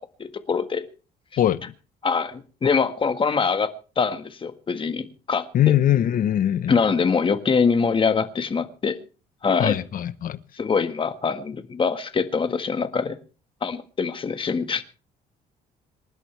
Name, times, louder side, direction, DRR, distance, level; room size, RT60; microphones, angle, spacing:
voice 1, 0.2-0.8 2.0-5.7 6.7-8.9 9.4-9.8 10.6-13.2 13.6-14.8, left 5 dB, 30° left, 1.6 m, -24 dB
voice 2, 5.5-6.7 9.6-10.4, left 11 dB, 55° left, 1.0 m, -21 dB
27.0 x 11.0 x 3.4 m
cardioid pair, 110°, 17 cm